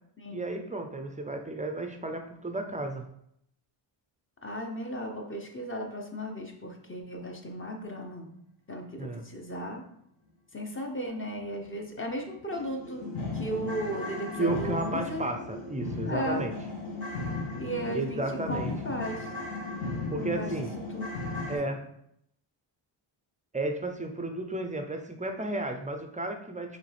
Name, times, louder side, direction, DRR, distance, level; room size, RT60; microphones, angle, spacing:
voice 1, 0.3-3.1 9.0-9.2 14.4-16.5 17.9-18.7 20.1-20.7 21.5-21.8 23.5-26.8, right 2 dB, 15° right, 5 dB, 0.5 m, -33 dB
voice 2, 4.4-8.3 8.7-9.9 10.5-13.1 13.3-15.2 16.0-16.5 17.6-19.3 20.2-21.2, equal, 25° left, 2 dB, 0.9 m, -36 dB
sound 1, 11.6-11.7 12.1-12.2 12.5-21.6, left 3 dB, 70° left, 1.7 m, -36 dB
4.9 x 3.2 x 3.4 m, 0.72 s
cardioid pair, 85°, 50 cm